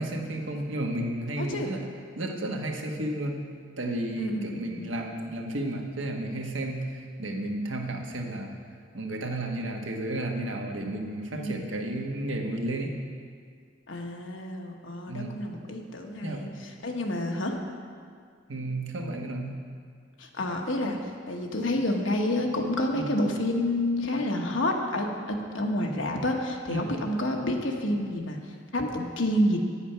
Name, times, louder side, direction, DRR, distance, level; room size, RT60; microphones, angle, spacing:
voice 1, 0.0-1.8 2.2-3.4 3.8-8.6 8.9-12.9 15.1-15.4 16.2-16.5 18.5-19.5 22.9-23.1 26.7-26.9, right 1 dB, 80° right, 2 dB, 1.2 m, -32 dB
voice 2, 1.4-1.7 4.2-4.9 11.3-11.7 13.9-16.5 16.8-17.6 20.2-29.6, left 1 dB, 85° left, 2 dB, 1.2 m, -29 dB
8.9 x 8.6 x 5.6 m, 2.1 s
head